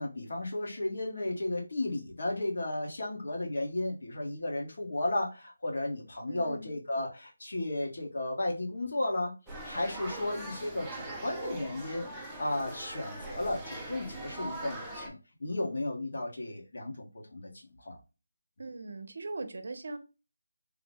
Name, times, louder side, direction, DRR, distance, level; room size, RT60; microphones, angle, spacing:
voice 1, 0.0-9.3 9.6-12.1 12.4-17.5 17.8-18.0, left 2 dB, 55° left, 0 dB, 1.2 m, -34 dB
voice 2, 6.3-6.7 18.6-20.0, right 3 dB, 50° right, 8 dB, 0.6 m, -40 dB
sound 1, 9.5-15.1, right 2 dB, 5° right, 0.4 m, -41 dB
3.7 x 2.1 x 3.4 m, 0.31 s
figure-of-eight pair, 180°, 0 cm